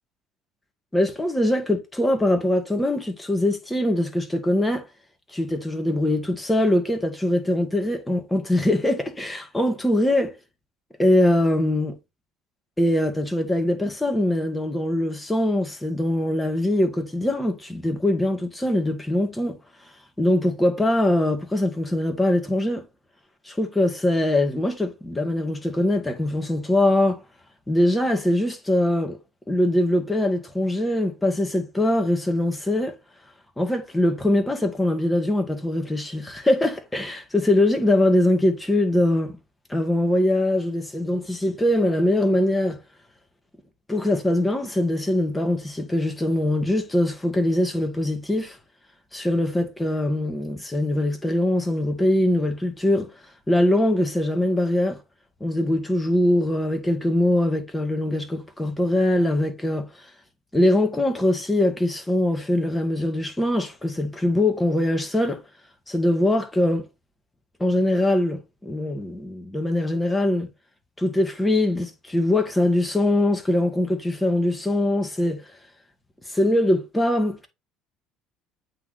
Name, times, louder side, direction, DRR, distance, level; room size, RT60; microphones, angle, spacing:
voice 1, 0.9-4.8 5.3-10.3 11.0-11.9 12.8-19.6 20.2-22.8 23.5-27.2 27.7-29.2 29.5-32.9 33.6-39.4 39.7-42.8 43.9-48.6 49.1-53.1 53.5-55.0 55.4-59.9 60.5-65.4 65.9-66.9 67.6-70.5 71.0-75.4 76.3-77.5, left 1 dB, 10° left, 2.0 m, -22 dB
8.3 x 3.8 x 4.1 m
hypercardioid pair, 65°, 0 cm